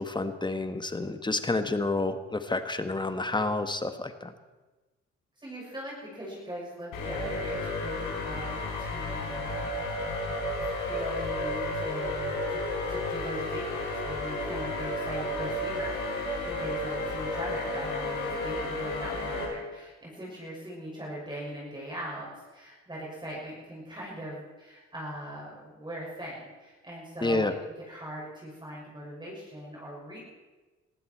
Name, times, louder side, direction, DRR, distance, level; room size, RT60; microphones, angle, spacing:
voice 1, 0.0-4.3 27.2-27.5, left 2 dB, 15° left, 9 dB, 1.5 m, -29 dB
voice 2, 5.4-9.6 10.6-12.6 12.9-27.6 27.9-30.2, right 1 dB, 15° right, -5 dB, 6.3 m, -40 dB
sound 1, 6.9-19.4, left 2 dB, 90° left, 4.8 m, -32 dB
20.5 x 15.0 x 4.5 m, 1.2 s
cardioid pair, 90°, 30 cm